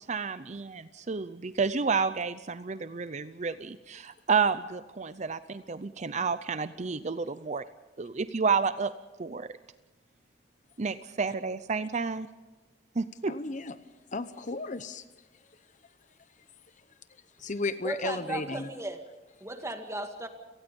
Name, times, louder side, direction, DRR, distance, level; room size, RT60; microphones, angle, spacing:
voice 1, 0.1-7.6 8.0-8.9 9.2-9.5 10.8-12.3 13.0-13.3, right 5 dB, 40° right, 13 dB, 0.6 m, -30 dB
voice 2, 13.3-13.7 14.1-15.0 17.4-18.7, left 3 dB, 40° left, 12 dB, 0.9 m, -34 dB
voice 3, 17.8-19.0 19.4-20.3, right 2 dB, 15° right, 5 dB, 2.1 m, -35 dB
29.5 x 19.0 x 5.4 m, 1.1 s
head